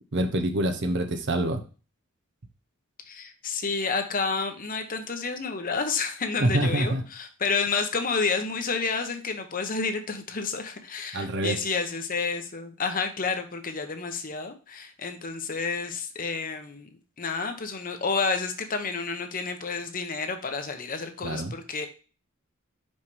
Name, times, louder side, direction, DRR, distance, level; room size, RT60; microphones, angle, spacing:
voice 1, 0.1-1.6 6.4-7.0 11.1-11.6 21.2-21.5, right 1 dB, 55° right, 6 dB, 0.9 m, -26 dB
voice 2, 3.1-16.9 17.2-21.9, left 4 dB, 40° left, 6 dB, 0.9 m, -30 dB
5.5 x 5.3 x 3.3 m, 0.36 s
head